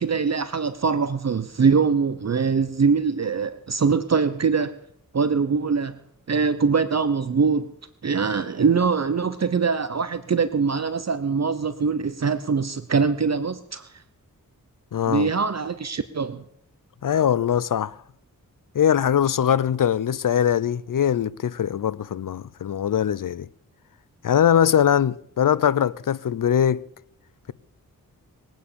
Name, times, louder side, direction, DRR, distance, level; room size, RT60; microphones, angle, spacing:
voice 1, 0.0-4.7 5.1-6.0 6.3-7.7 8.0-13.9 15.1-16.4, right 5 dB, 50° right, 0.9 m, -23 dB
voice 2, 14.9-15.3 17.0-18.0 18.7-23.5 24.2-26.9, left 9 dB, 65° left, 0.7 m, -21 dB
21.5 x 9.2 x 7.0 m
wide cardioid pair, 75°, 35 cm